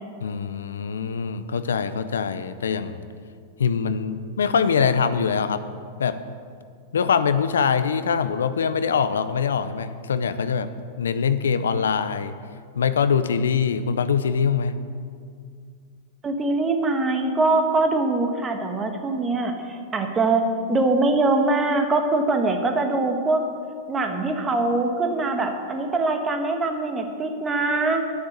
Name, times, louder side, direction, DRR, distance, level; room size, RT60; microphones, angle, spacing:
voice 1, 0.2-3.0 3.6-5.6 6.0-6.2 6.9-10.7 11.0-12.3 12.8-14.8, left 6 dB, 85° left, 12 dB, 0.5 m, -23 dB
voice 2, 16.2-23.5 23.9-28.0, right 2 dB, 20° right, 5 dB, 1.3 m, -23 dB
9.6 x 6.7 x 7.9 m, 2.2 s
hypercardioid pair, 115°, 0 cm